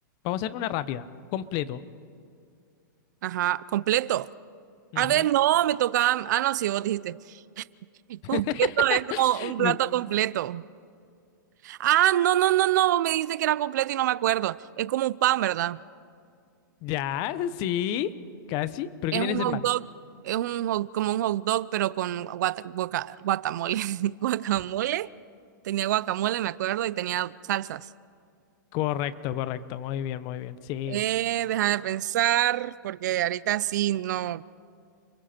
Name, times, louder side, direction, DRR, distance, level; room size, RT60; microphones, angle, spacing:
voice 1, 0.2-1.0 1.3-1.8 4.9-5.3 8.3-9.8 16.8-18.1 18.5-19.7 28.7-31.0, left 11 dB, 35° left, 0.9 m, -30 dB
voice 2, 3.2-4.3 5.0-7.6 8.1-10.6 11.6-15.8 19.1-19.8 20.2-25.1 25.6-27.9 30.9-34.4, right 13 dB, 60° right, 0.5 m, -26 dB
30.0 x 22.5 x 4.4 m
hypercardioid pair, 140°, 11 cm